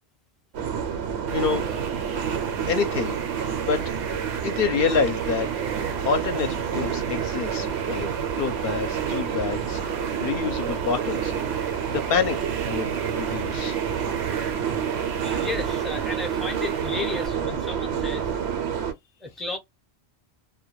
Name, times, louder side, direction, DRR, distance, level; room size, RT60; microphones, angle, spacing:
sound 1, 0.5-18.9, right 7 dB, 85° right, 0.9 m, -28 dB
voice 1, 1.3-1.7 2.2-2.4 2.7-3.8 4.4-5.5 6.0-8.1 8.4-9.8 10.2-12.4 12.7-13.8, left 5 dB, 70° left, 0.7 m, -27 dB
sound 2, 1.3-17.3, right 6 dB, 55° right, 0.5 m, -38 dB
voice 2, 15.2-18.3 19.2-19.6, left 3 dB, ahead, 0.4 m, -33 dB
2.2 x 2.2 x 2.9 m
omnidirectional pair, 1.1 m